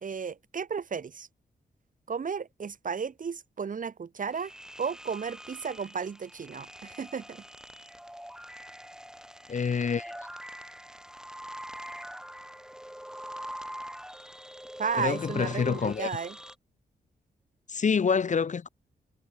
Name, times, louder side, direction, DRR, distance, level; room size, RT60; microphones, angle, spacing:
voice 1, 0.0-1.3 2.1-4.5 4.8-7.4 14.8-16.4, right 6 dB, 45° right, 0.7 m, -34 dB
sound 1, 4.3-16.5, equal, 5° right, 3.2 m, -44 dB
voice 2, 9.5-10.1 15.0-16.1 17.7-18.7, left 6 dB, 40° left, 0.6 m, -27 dB
supercardioid pair, 45°, 19 cm